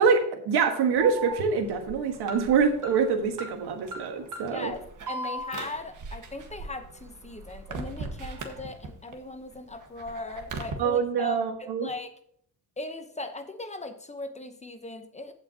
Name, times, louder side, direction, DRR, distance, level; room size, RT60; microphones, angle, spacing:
voice 1, 0.0-4.7 10.8-11.9, right 5 dB, 75° right, 6 dB, 1.6 m, -25 dB
Alarm, 1.0-9.1 9.5-10.7, right 3 dB, 50° right, 1.6 m, -38 dB
voice 2, 4.5-12.1 12.8-15.3, left 2 dB, 15° left, 7 dB, 0.9 m, -39 dB
15.0 x 5.9 x 2.8 m, 0.64 s
cardioid pair, 115°, 39 cm